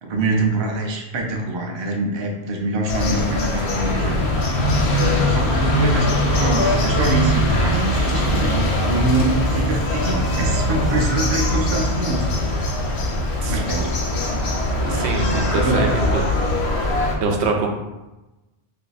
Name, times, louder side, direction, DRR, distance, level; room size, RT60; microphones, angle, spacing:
voice 1, 0.0-4.3 5.3-13.2 13.5-14.5 15.5-16.1, right 2 dB, 40° right, 1 dB, 0.4 m, -25 dB
sound 1, 2.9-17.2, left 1 dB, 85° left, 0.9 m, -21 dB
sound 2, 5.4-16.1, right 5 dB, 45° left, 0.5 m, -29 dB
voice 2, 14.8-16.2 17.2-17.7, right 4 dB, 85° right, 2 dB, 0.9 m, -24 dB
2.7 x 2.7 x 4.0 m, 1.0 s
omnidirectional pair, 1.1 m